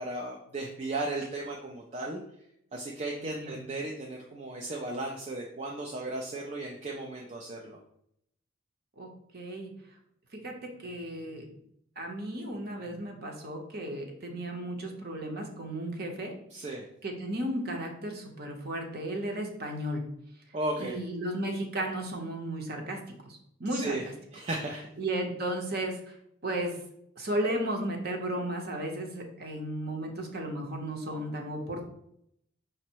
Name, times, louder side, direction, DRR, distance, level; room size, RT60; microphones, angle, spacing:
voice 1, 0.0-2.2 2.7-7.8 16.5-16.8 20.5-21.0 23.7-24.0 24.3-24.9, right 2 dB, 30° right, 0 dB, 0.4 m, -35 dB
voice 2, 3.2-3.7 9.0-9.7 10.3-11.5 12.0-16.3 17.0-20.0 20.8-23.0 23.2-24.0 25.0-26.1 26.4-26.7 27.2-31.9, right 1 dB, 50° right, 3 dB, 0.8 m, -34 dB
5.1 x 2.1 x 4.4 m, 0.73 s
head